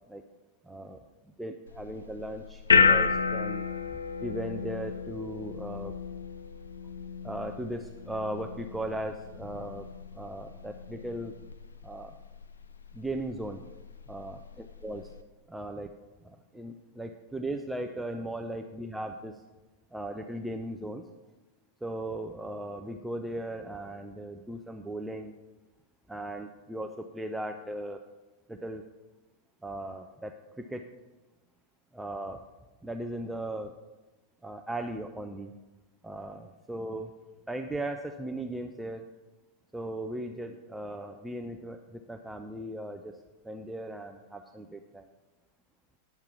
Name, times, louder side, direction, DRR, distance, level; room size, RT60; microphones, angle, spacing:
voice 1, 0.6-1.0 1.4-2.6 2.9-3.7 4.2-5.9 7.2-9.9 10.1-11.3 11.8-12.2 12.9-13.6 14.1-15.2 15.5-15.9 16.2-19.4 19.9-21.0 21.8-25.3 26.1-28.0 28.5-28.8 29.6-30.8 31.9-32.4 32.8-33.7 34.4-35.5 36.0-37.1 37.5-39.1 39.7-43.2 43.4-45.1, right 1 dB, 5° right, 5 dB, 0.4 m, -37 dB
sound 1, 1.7-15.2, left 5 dB, 70° left, 0.4 m, -31 dB
10.5 x 5.7 x 4.7 m, 1.1 s
figure-of-eight pair, 90°, 0 cm